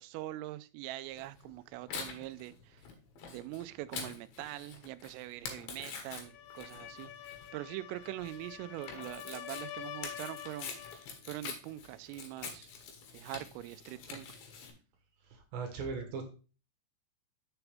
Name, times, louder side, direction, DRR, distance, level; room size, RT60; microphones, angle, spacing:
voice 1, 0.0-2.8 3.3-10.7 11.3-12.7 13.1-14.3, right 16 dB, 85° right, 13 dB, 3.1 m, -43 dB
Tearing, 1.2-14.7, left 5 dB, 65° left, 2.8 m, -46 dB
sound 1, 6.2-11.1, left 11 dB, 85° left, 3.2 m, -47 dB
voice 2, 15.3-16.2, right 5 dB, 65° right, 4 dB, 2.5 m, -38 dB
8.0 x 7.0 x 3.4 m, 0.35 s
omnidirectional pair, 5.8 m